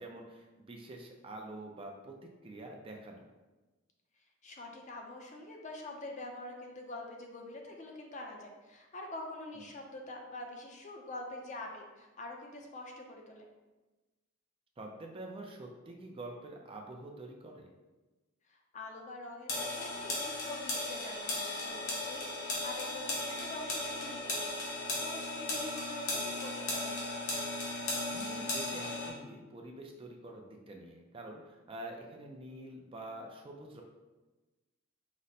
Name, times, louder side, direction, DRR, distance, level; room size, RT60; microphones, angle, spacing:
voice 1, 0.0-3.2 9.6-9.7 14.8-17.7 28.0-33.8, right 2 dB, 25° right, 1 dB, 0.4 m, -46 dB
voice 2, 4.4-13.5 18.5-22.4 22.6-26.9, left 2 dB, 35° left, 1 dB, 0.5 m, -45 dB
sound 1, 19.5-29.1, left 2 dB, 65° left, 1.0 m, -36 dB
5.0 x 2.1 x 4.1 m, 1.1 s
head